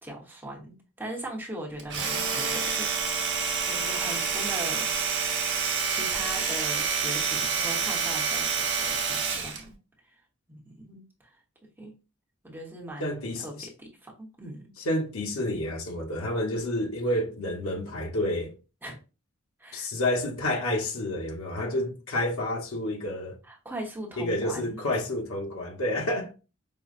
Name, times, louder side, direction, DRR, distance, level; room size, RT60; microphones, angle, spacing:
voice 1, 0.0-5.2 5.9-9.8 10.5-11.0 11.8-11.9 12.4-14.6 18.8-19.0 19.6-19.9 23.4-24.8, right 1 dB, 10° right, 0.9 m, -40 dB
Domestic sounds home sounds, 1.8-9.6, right 6 dB, 55° right, 0.9 m, -28 dB
voice 2, 13.0-13.7 14.8-18.5 19.7-23.4 24.2-26.3, left 1 dB, 90° left, 1.0 m, -29 dB
5.2 x 2.0 x 2.4 m
head